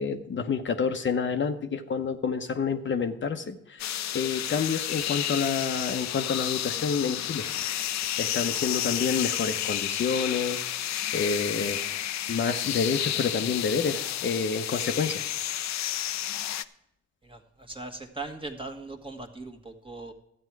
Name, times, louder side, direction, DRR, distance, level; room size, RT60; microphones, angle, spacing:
voice 1, 0.0-7.5 8.2-11.8 12.3-15.2, left 5 dB, 40° left, 6 dB, 0.9 m, -29 dB
sound 1, 3.8-16.6, left 12 dB, 65° left, 0.6 m, -31 dB
voice 2, 17.2-20.1, right 3 dB, 15° right, 4 dB, 1.5 m, -39 dB
12.5 x 8.7 x 4.6 m, 0.83 s
cardioid pair, 90°, 30 cm